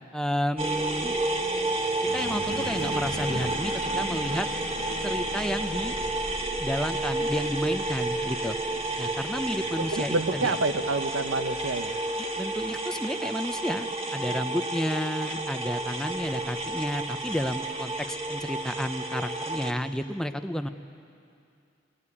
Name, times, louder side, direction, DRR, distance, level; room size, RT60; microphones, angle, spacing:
voice 1, 0.1-1.2 2.1-4.5 5.0-6.0 6.6-8.6 9.0-10.5 12.2-20.7, equal, 5° left, 9 dB, 0.6 m, -31 dB
sound 1, 0.6-19.7, right 2 dB, 30° right, 1.4 m, -31 dB
sound 2, 2.0-10.6, left 1 dB, 55° left, 1.3 m, -42 dB
voice 2, 9.8-12.0, right 2 dB, 75° right, 9 dB, 0.9 m, -28 dB
21.5 x 19.5 x 9.8 m, 2.5 s
head